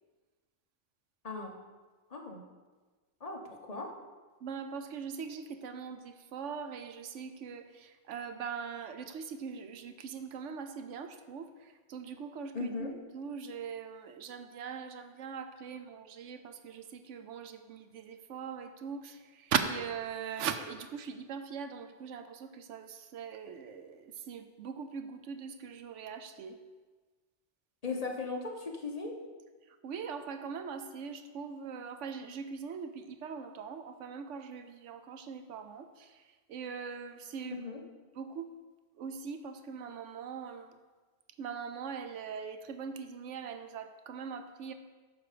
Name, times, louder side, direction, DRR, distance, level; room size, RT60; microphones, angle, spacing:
voice 1, 2.1-2.4 3.2-3.9 12.5-12.9 27.8-29.2 37.5-37.8, left 3 dB, 35° left, 1 dB, 1.1 m, -38 dB
voice 2, 4.4-26.6 29.8-36.2 36.5-37.6 38.2-38.5 39.0-40.8 41.4-44.7, right 6 dB, 90° right, 8 dB, 1.0 m, -41 dB
9.3 x 6.6 x 5.0 m, 1.3 s
omnidirectional pair, 1.2 m